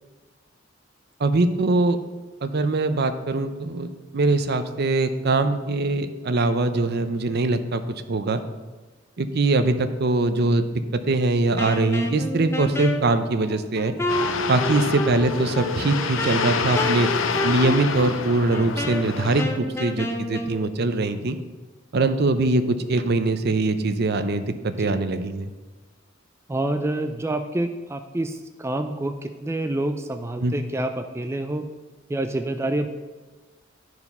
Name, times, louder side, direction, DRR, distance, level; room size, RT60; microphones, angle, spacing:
voice 1, 1.2-2.0 2.4-7.8 8.1-8.4 9.2-10.7 10.9-13.9 14.5-17.1 17.4-21.4 21.9-25.5 30.4-30.5, right 2 dB, 55° right, 10 dB, 0.6 m, -22 dB
Wind instrument woodwind instrument, 11.6-20.6, left 1 dB, 15° left, 0.7 m, -29 dB
sound 1, 14.1-19.4, left 5 dB, 85° left, 0.6 m, -28 dB
voice 2, 26.5-31.6 32.1-32.9, right 1 dB, 15° right, 6 dB, 0.4 m, -27 dB
11.0 x 4.8 x 5.4 m, 1.2 s
head